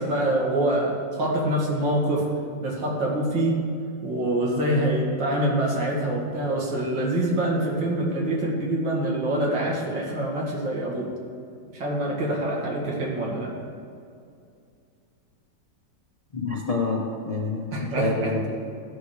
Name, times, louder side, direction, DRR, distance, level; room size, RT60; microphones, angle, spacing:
voice 1, 0.0-2.3 2.6-3.6 4.0-11.1 11.7-13.5 17.7-18.3, right 1 dB, 70° right, -3 dB, 2.5 m, -25 dB
voice 2, 16.3-17.7 18.0-18.6, left 2 dB, 35° left, -2 dB, 0.6 m, -27 dB
14.0 x 6.4 x 4.9 m, 2.4 s
omnidirectional pair, 2.1 m